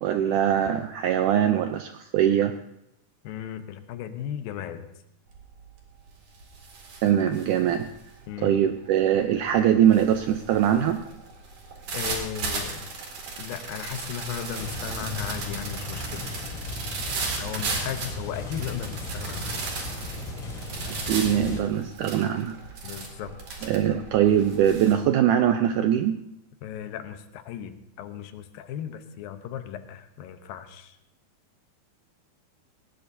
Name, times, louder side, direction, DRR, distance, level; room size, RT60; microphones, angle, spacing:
voice 1, 0.0-2.6 7.0-7.9 8.4-11.0 20.9-22.6 23.6-26.2, right 10 dB, 80° right, 7 dB, 1.8 m, -22 dB
voice 2, 3.2-4.9 8.3-8.6 11.9-12.9 13.4-16.3 17.4-19.5 22.8-23.7 26.6-31.0, left 10 dB, 80° left, 9 dB, 2.6 m, -36 dB
sound 1, 5.3-5.6 6.0-24.9, right 4 dB, 60° right, 3.7 m, -36 dB
sound 2, 14.5-21.6, left 2 dB, 35° left, 4.1 m, -36 dB
19.5 x 18.5 x 2.7 m, 0.81 s
omnidirectional pair, 4.3 m